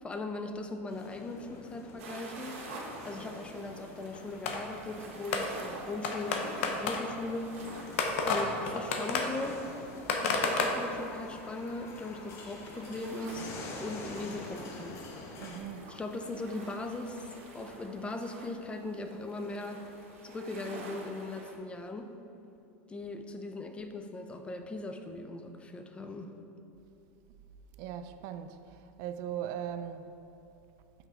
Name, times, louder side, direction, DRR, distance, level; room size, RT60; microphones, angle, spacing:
voice 1, 0.0-2.5 3.0-7.6 8.3-9.6 10.2-13.5 13.8-15.0 15.9-19.8 20.2-22.1 22.9-26.3, left 2 dB, 15° left, 0.4 m, -39 dB
sound 1, 0.9-15.6, left 3 dB, 40° left, 0.8 m, -47 dB
sound 2, 2.0-21.6, right 2 dB, 80° right, 1.0 m, -49 dB
sound 3, 4.1-4.9 5.3-11.4 12.3-12.4 12.6-12.7 13.2-13.3 14.6-14.7 15.2-15.3 16.7-16.8 17.7-17.8, left 3 dB, 75° left, 0.7 m, -32 dB
voice 2, 15.4-15.9 27.8-30.1, right 9 dB, 55° right, 0.3 m, -39 dB
6.0 x 4.0 x 4.6 m
supercardioid pair, 120°, 7 cm